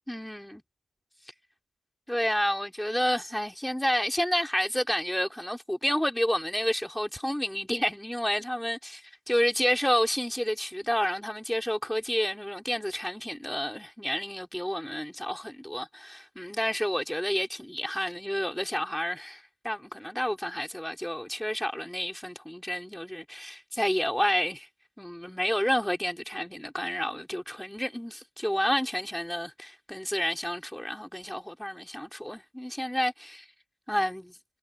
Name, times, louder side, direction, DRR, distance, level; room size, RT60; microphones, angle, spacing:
voice 1, 0.1-0.6 2.1-24.7 25.0-33.5 33.9-34.4, equal, 5° left, 3.7 m, -30 dB
cardioid pair, 115°, 0 cm